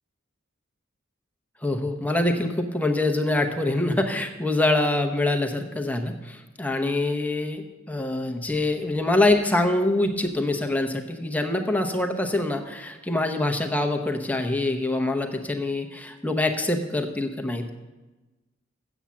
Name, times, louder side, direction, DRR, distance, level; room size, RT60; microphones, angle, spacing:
voice 1, 1.6-17.7, left 2 dB, 10° left, 4 dB, 0.8 m, -25 dB
7.9 x 7.1 x 7.4 m, 1.1 s
head